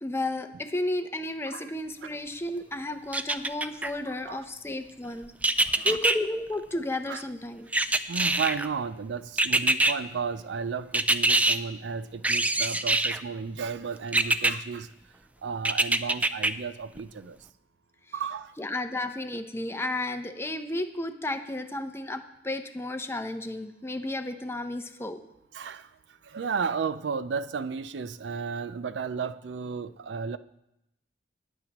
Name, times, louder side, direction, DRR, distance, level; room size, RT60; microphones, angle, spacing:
voice 1, 0.0-5.3 5.8-7.7 18.6-25.2, left 1 dB, 15° left, 0.7 m, -33 dB
sound 1, 3.1-3.9 5.4-6.2 7.7-8.7 9.4-9.9 10.9-11.6 12.2-13.2 14.1-14.5 15.7-16.5 17.0-17.1, right 2 dB, 10° right, 0.3 m, -23 dB
voice 2, 5.6-6.0 7.1-7.2 8.1-14.9 15.4-17.4 18.1-18.5 25.5-25.9 26.3-30.4, right 5 dB, 85° right, 0.4 m, -33 dB
19.5 x 7.5 x 3.0 m
head